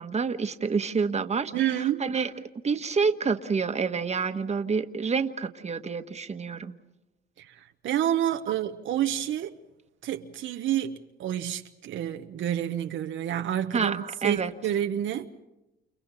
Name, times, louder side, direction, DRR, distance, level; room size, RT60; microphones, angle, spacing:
voice 1, 0.0-6.7 13.7-14.5, right 5 dB, 35° right, 1.4 m, -28 dB
voice 2, 1.5-2.1 7.4-9.5 10.0-15.3, right 11 dB, 75° right, 1.1 m, -29 dB
29.5 x 29.5 x 4.1 m
cardioid pair, 90°, 20 cm